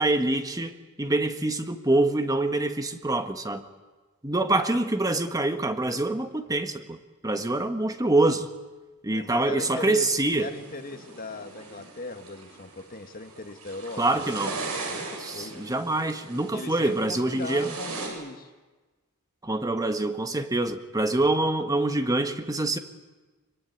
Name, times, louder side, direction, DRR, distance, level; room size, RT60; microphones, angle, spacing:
voice 1, 0.0-3.6 4.2-7.0 7.2-8.5 9.0-10.5 14.0-14.5 15.2-17.7 19.4-22.8, right 2 dB, 15° right, 8 dB, 1.4 m, -25 dB
voice 2, 9.1-10.1 10.4-14.3 14.7-15.6 16.5-18.5, left 2 dB, 40° left, 7 dB, 1.9 m, -39 dB
sound 1, 10.4-18.1, right 3 dB, 80° right, 7.5 m, -39 dB
24.5 x 24.0 x 9.6 m, 1.2 s
head